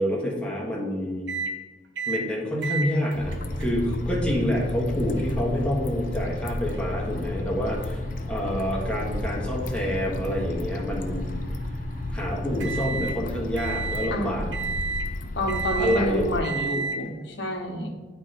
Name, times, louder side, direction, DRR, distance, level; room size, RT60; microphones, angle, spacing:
voice 1, 0.0-1.4 2.1-11.3 12.1-14.5 15.8-16.3, equal, 5° left, -4 dB, 1.3 m, -28 dB
sound 1, 1.3-1.5 2.0-2.2 2.6-13.2 13.6-14.1 14.5-15.1 15.5-16.0 16.4-17.0, right 1 dB, 80° right, 0.8 m, -33 dB
sound 2, 3.1-16.4, left 1 dB, 45° left, 0.4 m, -33 dB
voice 2, 14.1-14.6 15.4-17.9, equal, 70° left, 2 dB, 0.9 m, -29 dB
9.0 x 3.3 x 4.1 m, 1.3 s
head